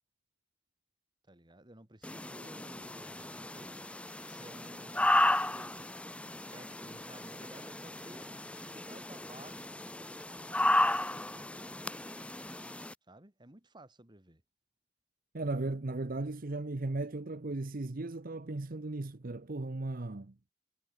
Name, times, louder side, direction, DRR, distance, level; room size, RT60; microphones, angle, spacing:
voice 1, 1.3-3.8 4.3-6.0 6.2-8.3 8.6-9.7 10.6-11.5 13.1-14.4, right 1 dB, 25° right, 2.0 m, -55 dB
sound 1, 2.0-12.9, left 1 dB, 5° left, 0.7 m, -34 dB
voice 2, 15.3-20.3, right 2 dB, 45° right, 0.9 m, -36 dB
head